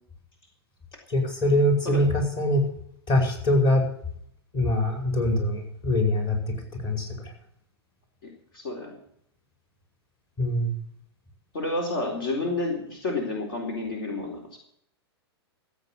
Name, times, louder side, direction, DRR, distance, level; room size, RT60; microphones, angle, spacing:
voice 1, 1.1-2.6 3.1-3.8 4.5-6.5 6.8-7.3 10.4-10.7, left 1 dB, 35° left, 2 dB, 5.2 m, -23 dB
voice 2, 8.2-9.0 11.5-14.6, left 2 dB, 60° left, 1 dB, 3.9 m, -30 dB
15.0 x 8.6 x 7.6 m, 0.68 s
figure-of-eight pair, 105°, 13 cm